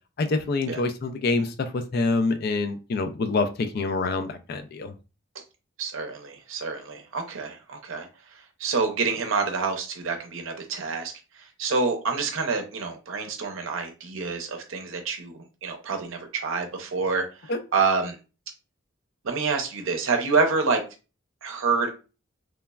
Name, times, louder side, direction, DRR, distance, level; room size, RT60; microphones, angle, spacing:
voice 1, 0.2-4.9 17.5-17.6, left 3 dB, 45° left, 9 dB, 0.3 m, -26 dB
voice 2, 5.8-8.1 8.6-11.1 11.6-18.2 19.2-20.8 21.4-21.9, right 4 dB, 70° right, 4 dB, 0.6 m, -27 dB
3.2 x 2.0 x 2.2 m, 0.31 s
head